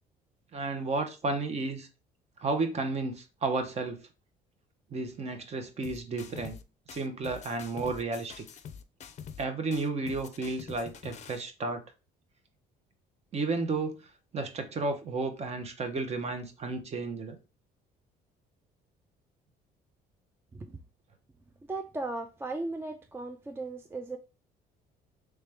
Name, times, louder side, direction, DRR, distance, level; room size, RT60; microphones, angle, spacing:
voice 1, 0.5-1.9 2.4-4.0 4.9-6.6 6.9-8.4 9.4-11.8 13.3-13.9 14.3-17.4, right 3 dB, 40° right, 0.8 m, -32 dB
sound 1, 5.8-6.6 6.9-9.4 9.7-11.4, left 7 dB, 45° left, 0.5 m, -45 dB
voice 2, 21.7-24.2, right 2 dB, 15° right, 0.3 m, -36 dB
3.2 x 3.2 x 3.3 m
cardioid pair, 110°, 17 cm